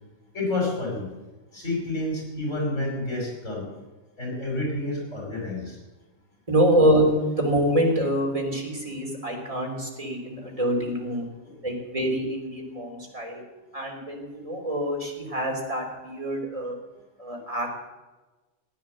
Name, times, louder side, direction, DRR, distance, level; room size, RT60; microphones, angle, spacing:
voice 1, 0.3-1.1 1.5-3.7 4.2-5.8 11.4-11.5, left 2 dB, 75° left, -2 dB, 5.8 m, -29 dB
voice 2, 6.5-11.2 11.6-13.4 13.7-16.8 17.2-17.9, equal, 25° right, -1 dB, 3.4 m, -25 dB
16.0 x 9.6 x 7.5 m, 1.2 s
omnidirectional pair, 1.3 m